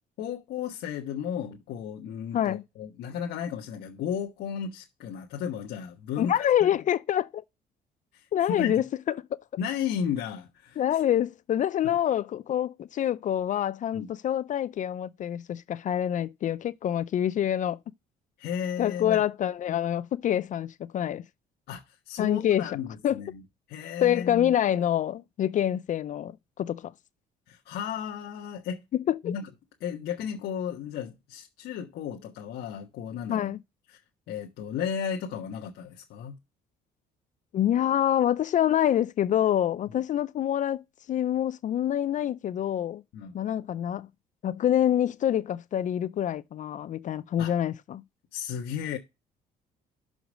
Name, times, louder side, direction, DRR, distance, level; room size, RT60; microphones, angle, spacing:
voice 1, 0.2-6.5 8.1-8.7 9.6-10.8 13.9-14.1 18.4-19.2 21.7-23.4 23.7-24.5 27.5-28.8 29.2-29.5 29.8-33.5 33.9-34.0 34.3-36.3 39.9-40.0 43.1-43.4 47.4-47.5 48.3-49.0, left 8 dB, 75° left, 1.3 m, -34 dB
voice 2, 6.2-7.4 8.3-8.8 10.8-17.8 18.8-21.2 22.2-22.6 23.0-23.2 24.0-26.3 26.6-26.9 29.1-29.3 33.3-33.6 37.5-40.8 41.1-43.0 43.3-44.1 44.4-48.0, left 11 dB, 50° left, 0.5 m, -26 dB
6.2 x 5.1 x 6.2 m
cardioid pair, 110°, 17 cm